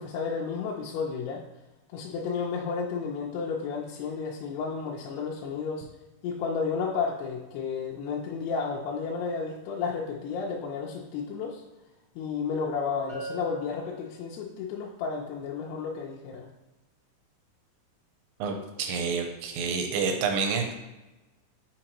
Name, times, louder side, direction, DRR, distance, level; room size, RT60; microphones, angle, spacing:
voice 1, 0.0-1.4 1.9-5.8 6.2-11.6 12.2-16.5, left 5 dB, 80° left, -3 dB, 2.5 m, -32 dB
Bell, 13.1-14.7, right 1 dB, 60° right, 0.4 m, -42 dB
voice 2, 18.4-20.7, right 5 dB, 85° right, 4 dB, 2.8 m, -28 dB
7.5 x 4.5 x 2.9 m, 1.0 s
omnidirectional pair, 4.9 m